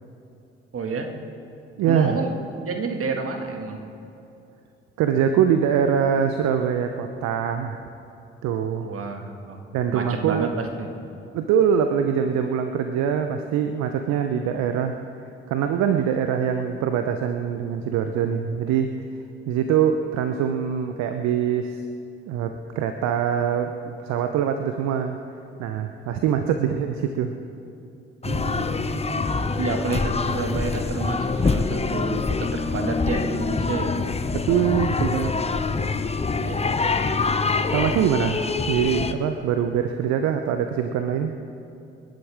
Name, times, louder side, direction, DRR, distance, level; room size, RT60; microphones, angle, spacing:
voice 1, 0.7-1.1 1.8-2.3 2.6-3.8 8.8-9.7 9.9-10.9 28.2-29.2 29.6-34.0 36.4-37.1, right 4 dB, 45° right, 4 dB, 2.0 m, -30 dB
voice 2, 1.8-2.2 5.0-7.8 8.4-8.9 9.7-10.5 11.3-15.0 15.5-18.9 19.5-21.8 22.3-25.2 25.6-27.3 34.3-35.3 37.7-41.4, right 8 dB, 65° right, 7 dB, 0.9 m, -23 dB
sound 1, 28.2-39.1, left 4 dB, 20° left, 0.9 m, -25 dB
28.5 x 11.5 x 3.6 m, 2.8 s
figure-of-eight pair, 45°, 30 cm